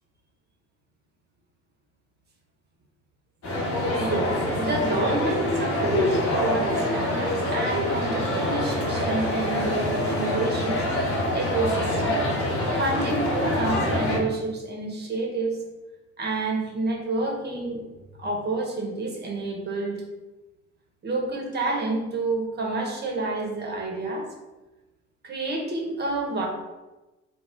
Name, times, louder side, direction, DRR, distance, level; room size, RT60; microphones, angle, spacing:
sound 1, 3.4-14.2, left 1 dB, 35° left, 1.0 m, -25 dB
voice 1, 4.0-12.2 12.7-15.6 16.2-17.8 18.2-20.0 21.0-24.3 25.2-26.5, right 2 dB, 25° right, 0 dB, 0.8 m, -29 dB
2.3 x 2.1 x 3.5 m, 1.1 s
figure-of-eight pair, 50°, 38 cm